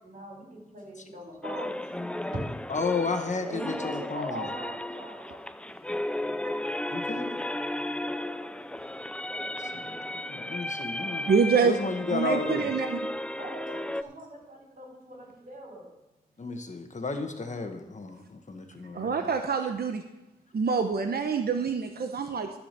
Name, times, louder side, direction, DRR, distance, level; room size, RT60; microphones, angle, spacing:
voice 1, 0.0-2.7 3.5-5.6 8.2-8.6 13.4-15.9, right 1 dB, 60° right, 0 dB, 4.3 m, -41 dB
sound 1, 1.4-14.0, left 1 dB, 5° left, 0.3 m, -34 dB
voice 2, 2.7-4.5 6.9-7.4 9.5-11.3 11.6-12.8 16.4-19.4 19.6-19.7, left 3 dB, 50° left, 5 dB, 1.3 m, -33 dB
voice 3, 11.2-11.7 12.1-13.0 18.9-20.0 20.5-22.6, right 5 dB, 90° right, 6 dB, 0.8 m, -26 dB
13.5 x 4.9 x 6.7 m, 1.0 s
wide cardioid pair, 105°, 16 cm